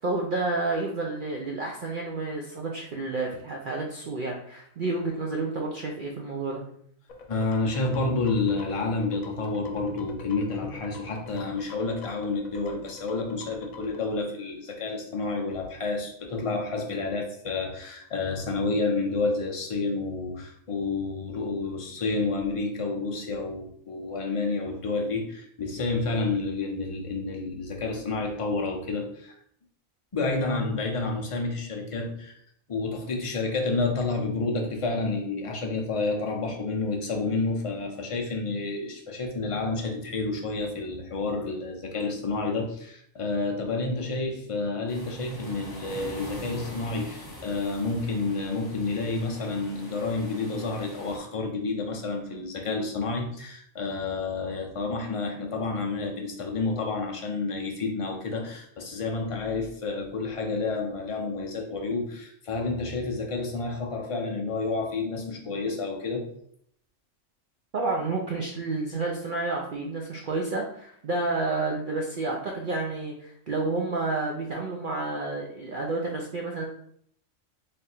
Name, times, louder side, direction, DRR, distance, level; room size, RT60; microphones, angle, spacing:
voice 1, 0.0-6.6 67.7-76.6, right 3 dB, 60° right, -1 dB, 0.5 m, -30 dB
sound 1, 7.1-14.0, left 4 dB, 85° left, 1.1 m, -46 dB
voice 2, 7.3-29.3 30.1-32.3 32.7-66.3, left 3 dB, 55° left, 1 dB, 0.3 m, -29 dB
sound 2, 44.9-51.2, left 1 dB, 20° left, 0.7 m, -44 dB
3.3 x 2.4 x 4.2 m, 0.65 s
omnidirectional pair, 1.4 m